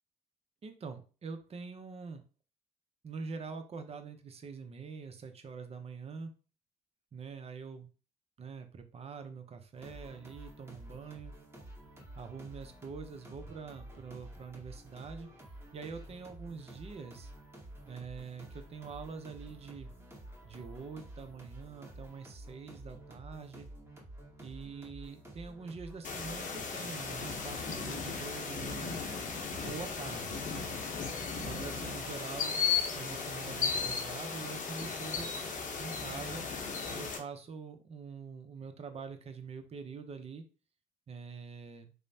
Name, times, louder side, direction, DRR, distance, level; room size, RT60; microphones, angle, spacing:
voice 1, 0.6-2.2 3.0-6.3 7.1-7.9 8.4-11.3 12.2-15.3 15.7-17.3 17.9-19.9 20.4-23.7 24.4-29.0 29.6-30.8 31.4-32.6 32.9-35.3 35.8-36.5 36.9-40.4 41.1-41.9, right 5 dB, 40° right, 7 dB, 0.6 m, -45 dB
sound 1, 9.7-26.6, right 1 dB, 15° right, 1.4 m, -50 dB
sound 2, 26.0-37.2, left 5 dB, 55° left, 0.7 m, -36 dB
3.0 x 2.0 x 2.7 m, 0.35 s
supercardioid pair, 65°, 16 cm